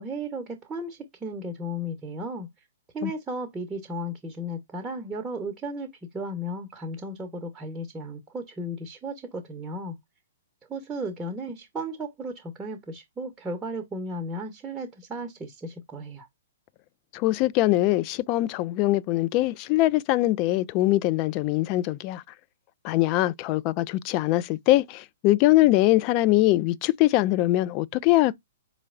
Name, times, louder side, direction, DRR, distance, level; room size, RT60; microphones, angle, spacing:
voice 1, 0.0-2.5 2.9-10.0 10.7-16.3, equal, 15° right, 0.9 m, -35 dB
voice 2, 17.1-22.2 22.8-28.3, left 17 dB, 35° left, 0.3 m, -22 dB
4.6 x 3.0 x 2.4 m
figure-of-eight pair, 120°, 0 cm